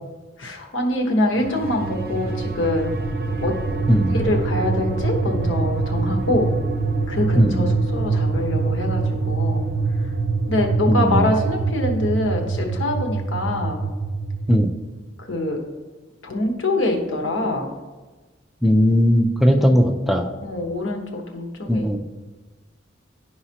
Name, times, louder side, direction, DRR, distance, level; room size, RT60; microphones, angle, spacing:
voice 1, 0.4-2.9 3.4-3.5 4.1-6.5 7.1-9.6 10.0-10.1 10.5-13.8 15.2-15.6 16.2-17.7 19.6-19.7 20.4-22.0, left 1 dB, 75° left, 2 dB, 1.2 m, -24 dB
sound 1, 1.3-14.6, right 3 dB, 50° right, 0.6 m, -24 dB
voice 2, 7.4-7.7 10.9-11.3 14.5-14.7 18.6-20.3 21.7-22.0, equal, ahead, 4 dB, 0.4 m, -18 dB
11.0 x 4.8 x 2.9 m, 1.3 s
head